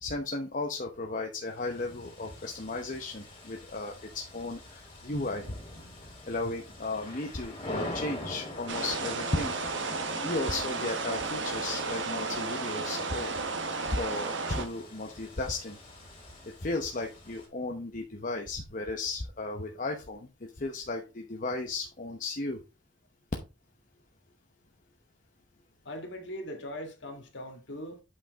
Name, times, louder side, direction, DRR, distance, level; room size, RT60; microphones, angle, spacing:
voice 1, 0.0-5.5 6.3-9.7 10.2-13.3 13.9-15.8 16.6-20.3 20.6-22.6, left 2 dB, 40° left, 0.9 m, -35 dB
sound 1, 1.4-17.5, left 1 dB, 25° left, 3.6 m, -45 dB
sound 2, 8.7-14.7, right 3 dB, 65° right, 1.2 m, -33 dB
voice 2, 25.8-28.0, equal, 60° left, 1.9 m, -40 dB
8.6 x 5.2 x 3.6 m
head